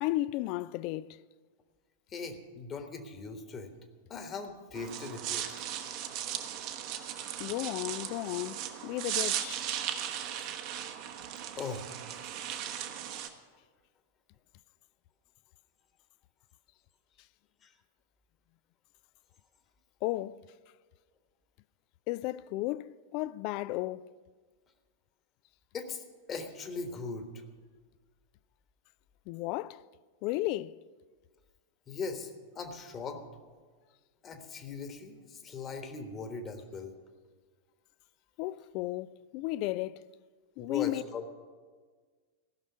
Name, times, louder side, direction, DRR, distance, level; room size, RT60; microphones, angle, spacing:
voice 1, 0.0-1.2 7.4-9.6 20.0-20.4 22.1-24.0 29.3-29.8 30.2-30.8 38.4-40.0 40.6-41.0, left 17 dB, 45° left, 0.3 m, -34 dB
voice 2, 2.1-3.7 4.1-5.5 11.6-11.9 17.6-17.7 25.7-27.3 31.9-33.2 34.2-36.9 40.6-41.3, left 4 dB, 25° left, 1.3 m, -40 dB
sound 1, 4.7-13.3, right 10 dB, 45° right, 1.0 m, -37 dB
15.0 x 6.2 x 9.4 m
figure-of-eight pair, 90°, 0 cm